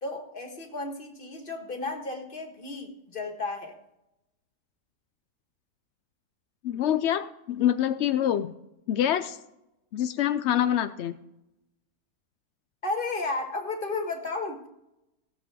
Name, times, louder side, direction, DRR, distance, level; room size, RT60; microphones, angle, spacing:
voice 1, 0.0-3.8 12.8-14.7, left 3 dB, 35° left, 3 dB, 1.9 m, -33 dB
voice 2, 6.6-8.5 8.9-9.4 9.9-11.2, left 10 dB, 70° left, 10 dB, 0.6 m, -25 dB
17.0 x 7.5 x 4.8 m, 0.88 s
omnidirectional pair, 1.7 m